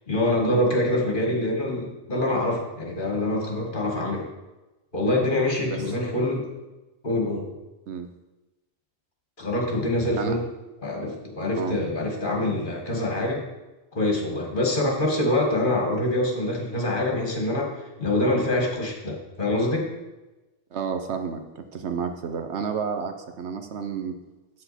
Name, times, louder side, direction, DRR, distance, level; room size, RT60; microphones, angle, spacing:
voice 1, 0.1-4.3 4.9-6.5 7.0-7.5 9.4-10.4 10.8-13.4 13.9-19.9, left 1 dB, 45° left, 0 dB, 1.8 m, -25 dB
voice 2, 20.7-24.2, right 6 dB, 65° right, 6 dB, 1.0 m, -31 dB
8.0 x 7.7 x 4.1 m, 1.1 s
omnidirectional pair, 1.3 m